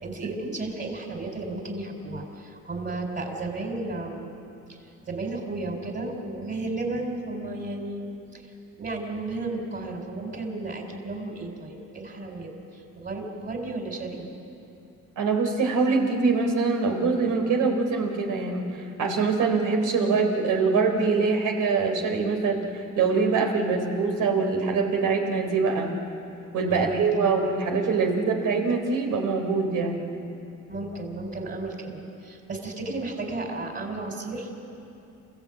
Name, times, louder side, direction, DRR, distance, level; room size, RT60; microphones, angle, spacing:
voice 1, 0.0-4.3 4.7-8.1 8.3-8.4 8.8-14.3 26.7-27.0 30.7-34.5, right 2 dB, 35° right, 1 dB, 4.5 m, -33 dB
voice 2, 15.2-18.6 19.0-22.6 23.0-25.9 26.5-30.0, right 4 dB, 85° right, 2 dB, 3.6 m, -24 dB
28.5 x 15.5 x 8.8 m, 2.7 s
cardioid pair, 90°, 30 cm